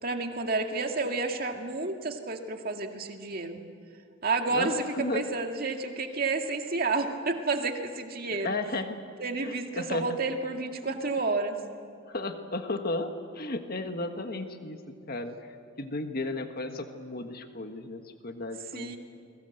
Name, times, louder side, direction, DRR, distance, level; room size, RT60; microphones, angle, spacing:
voice 1, 0.0-3.6 4.2-8.5 9.2-11.6 18.7-19.0, right 3 dB, 45° right, 4 dB, 2.1 m, -30 dB
voice 2, 4.5-5.2 8.3-9.0 9.4-10.2 12.1-19.0, left 2 dB, 45° left, 6 dB, 1.6 m, -34 dB
29.5 x 22.0 x 7.9 m, 2.3 s
head